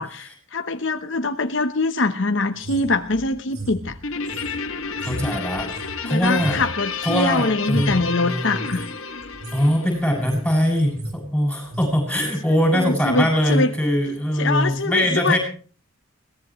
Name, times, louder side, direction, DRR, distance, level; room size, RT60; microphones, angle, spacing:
voice 1, 0.0-4.0 6.0-8.9 12.7-13.7 14.4-15.4, left 3 dB, 60° left, 7 dB, 1.0 m, -23 dB
sound 1, 2.6-7.3 7.6-8.1 8.6-8.9 9.2-9.7 10.0-10.5 10.8-11.2 11.7-11.9, right 1 dB, 90° right, 4.7 m, -34 dB
Guitar, 4.0-10.7, left 5 dB, 75° left, 2.0 m, -31 dB
voice 2, 5.0-6.6 7.0-8.6 9.5-15.4, equal, 5° left, 1 dB, 7.2 m, -22 dB
22.0 x 18.5 x 3.1 m, 0.40 s
head